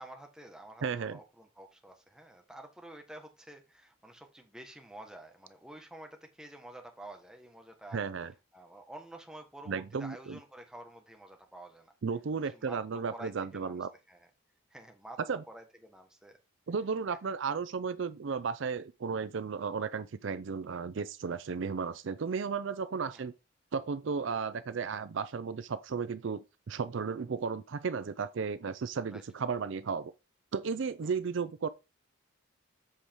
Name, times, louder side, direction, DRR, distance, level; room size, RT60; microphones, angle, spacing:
voice 1, 0.0-8.0 8.5-11.9 12.4-12.8 13.1-13.8 14.1-14.3 14.7-15.2 15.5-16.4 17.1-17.2 23.1-23.2 29.1-29.2 31.0-31.1, right 1 dB, 5° right, 1.2 m, -49 dB
voice 2, 0.8-1.2 7.9-8.3 9.7-10.4 12.0-13.9 15.3-15.4 16.7-23.3 23.7-30.1 30.5-31.7, right 5 dB, 60° right, 0.4 m, -34 dB
7.6 x 4.9 x 4.5 m
head